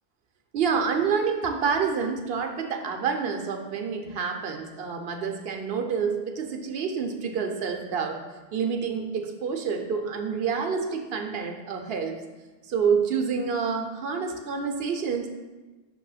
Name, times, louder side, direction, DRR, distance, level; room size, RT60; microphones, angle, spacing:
voice 1, 0.5-8.2 8.5-12.1 12.7-15.3, right 6 dB, 70° right, 4 dB, 0.9 m, -28 dB
6.0 x 3.0 x 5.5 m, 1.2 s
omnidirectional pair, 1.1 m